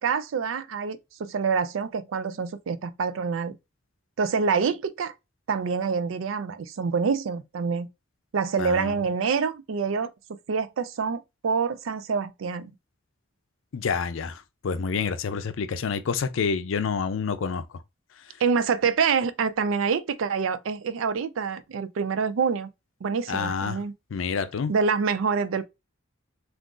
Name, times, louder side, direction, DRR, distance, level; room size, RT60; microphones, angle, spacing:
voice 1, 0.0-3.5 4.2-5.1 5.5-7.9 8.3-10.1 10.5-12.7 18.4-22.7 23.0-23.9 24.7-25.7, right 5 dB, 85° right, 0.4 m, -26 dB
voice 2, 8.6-8.9 13.7-17.6 23.3-23.8 24.1-24.7, left 5 dB, 80° left, 0.4 m, -28 dB
2.5 x 2.4 x 3.7 m
head